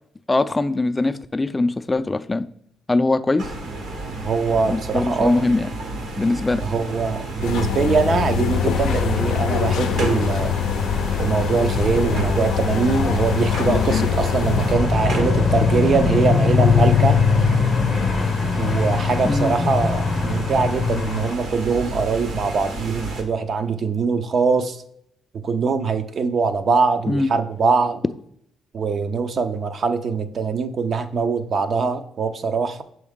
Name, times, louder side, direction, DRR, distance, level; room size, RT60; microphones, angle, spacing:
voice 1, 0.3-2.5 2.9-3.5 4.7-5.7 6.2-6.6 19.2-19.5 27.1-27.3, left 2 dB, 20° left, 0.3 m, -21 dB
sound 1, 3.4-23.2, right 2 dB, 70° right, 1.2 m, -31 dB
voice 2, 4.2-5.4 6.6-10.5 11.2-17.2 18.6-24.8 25.4-28.0 28.7-32.8, right 5 dB, 50° right, 0.6 m, -22 dB
sound 2, 7.4-14.7, left 8 dB, 85° left, 0.4 m, -24 dB
sound 3, 8.5-21.3, left 5 dB, 40° left, 0.7 m, -23 dB
6.2 x 4.6 x 3.6 m
cardioid pair, 90°, 0 cm